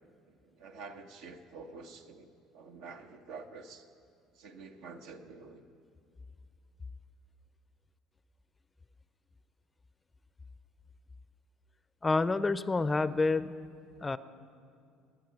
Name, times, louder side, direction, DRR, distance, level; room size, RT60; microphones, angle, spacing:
voice 1, 0.3-3.8 4.3-5.6, right 4 dB, 70° right, 6 dB, 0.9 m, -48 dB
voice 2, 12.0-13.5 14.0-14.2, left 3 dB, 20° left, 16 dB, 0.5 m, -28 dB
20.5 x 9.3 x 4.7 m, 2.4 s
hypercardioid pair, 70°, 0 cm